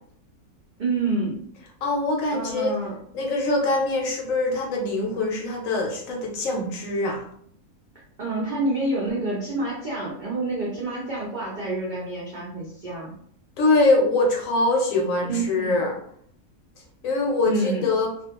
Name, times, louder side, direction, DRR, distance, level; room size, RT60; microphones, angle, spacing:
voice 1, 0.8-1.5 2.3-2.9 8.2-13.1 15.2-15.8 17.4-17.9, right 2 dB, 60° right, -5 dB, 0.5 m, -28 dB
voice 2, 1.8-2.7 3.1-7.3 13.6-15.9 17.0-18.1, left 2 dB, 65° left, 0 dB, 1.0 m, -23 dB
2.4 x 2.3 x 2.8 m, 0.63 s
omnidirectional pair, 1.6 m